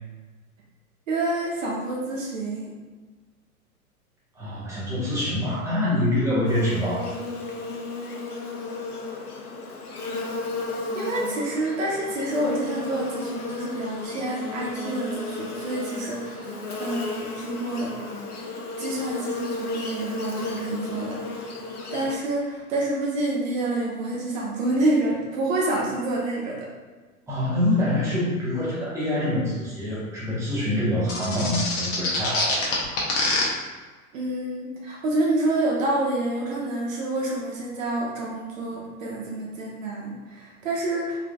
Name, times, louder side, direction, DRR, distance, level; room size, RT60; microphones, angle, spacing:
voice 1, 1.1-2.7 10.9-17.9 18.8-21.6 21.9-26.7 34.1-41.2, right 2 dB, 60° right, -3 dB, 0.9 m, -28 dB
voice 2, 4.3-7.1 27.3-32.7, left 1 dB, 5° right, -9 dB, 1.0 m, -25 dB
Buzz, 6.4-22.2, left 3 dB, 85° left, 0.6 m, -34 dB
sound 1, 31.1-33.4, left 3 dB, 35° left, 0.8 m, -24 dB
3.5 x 2.8 x 2.2 m, 1.3 s
figure-of-eight pair, 100°, 44 cm